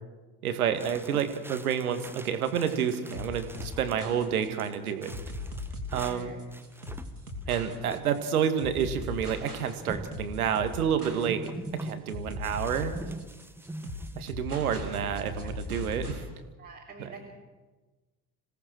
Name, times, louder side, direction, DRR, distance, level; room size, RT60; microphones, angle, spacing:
voice 1, 0.4-5.1 5.9-6.3 7.5-13.0 14.2-16.2 17.0-17.1, right 8 dB, 70° right, 9 dB, 2.0 m, -29 dB
sound 1, 0.7-3.9 4.3-6.2 6.5-7.4 7.9-8.1 8.4-8.5 9.4-9.5 9.9-10.3 11.2-11.9 12.4-14.3, right 1 dB, 5° right, 1.4 m, -43 dB
sound 2, 2.2-16.2, left 2 dB, 85° right, 3.1 m, -39 dB
voice 2, 5.9-6.4 16.6-17.3, right 4 dB, 20° right, -2 dB, 3.8 m, -44 dB
27.0 x 17.5 x 6.2 m, 1.2 s
figure-of-eight pair, 60°, 44 cm